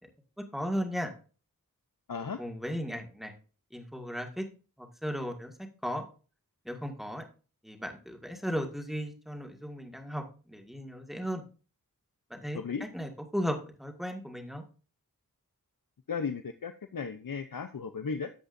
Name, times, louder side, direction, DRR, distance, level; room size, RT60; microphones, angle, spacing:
voice 1, 0.5-1.1 2.4-3.3 3.7-4.4 4.8-5.5 5.8-6.0 6.7-7.2 7.6-11.4 12.3-12.6 12.9-14.6, equal, ahead, 3 dB, 1.9 m, -35 dB
voice 2, 2.1-2.4 12.5-12.9 16.1-18.3, left 5 dB, 70° left, 8 dB, 0.7 m, -35 dB
13.0 x 7.8 x 2.6 m, 0.37 s
wide cardioid pair, 50°, 35 cm